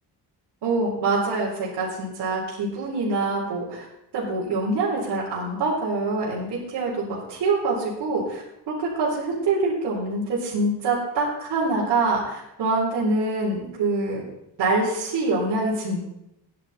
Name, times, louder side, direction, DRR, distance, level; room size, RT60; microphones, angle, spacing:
voice 1, 0.6-3.9 4.1-14.2 14.6-16.0, right 3 dB, 75° right, -8 dB, 4.1 m, -25 dB
17.0 x 10.5 x 4.3 m, 0.86 s
cardioid pair, 160°, 41 cm